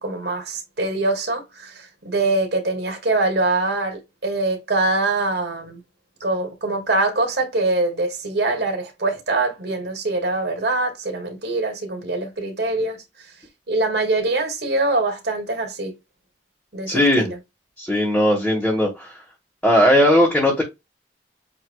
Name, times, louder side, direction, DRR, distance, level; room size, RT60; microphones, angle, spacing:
voice 1, 0.0-5.8 6.2-13.0 13.7-15.9 16.7-17.4, right 2 dB, 70° right, 2.2 m, -23 dB
voice 2, 16.9-17.3 17.8-19.1 19.6-20.6, left 1 dB, 5° left, 1.4 m, -17 dB
7.8 x 2.8 x 2.3 m
head